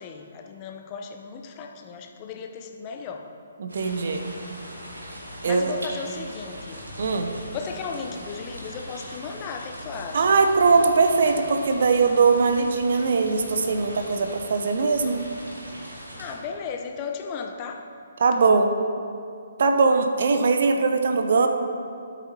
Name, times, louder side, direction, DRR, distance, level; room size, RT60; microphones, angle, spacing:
voice 1, 0.0-3.3 5.5-6.9 7.5-10.3 16.2-17.9, left 5 dB, 30° left, 4 dB, 0.6 m, -35 dB
voice 2, 3.6-4.3 5.4-5.7 7.0-7.3 10.1-15.2 18.2-18.7 19.6-21.5, right 4 dB, 55° right, 6 dB, 0.7 m, -21 dB
sound 1, 3.7-16.3, equal, 75° right, 2.2 m, -40 dB
12.5 x 8.3 x 2.8 m, 2.4 s
figure-of-eight pair, 130°, 0 cm